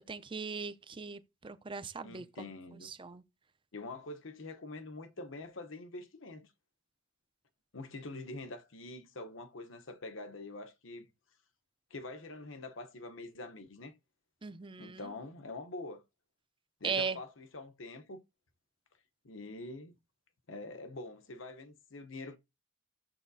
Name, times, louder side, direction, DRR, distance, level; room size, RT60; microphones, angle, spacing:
voice 1, 0.1-2.5 2.8-3.2 14.4-15.1 16.8-17.2, right 5 dB, 25° right, 0.5 m, -38 dB
voice 2, 2.0-2.9 3.7-6.5 7.7-11.1 11.9-13.9 14.8-16.0 16.8-18.2 19.2-19.9 20.5-22.4, left 2 dB, 75° left, 0.9 m, -45 dB
13.5 x 7.0 x 2.7 m
head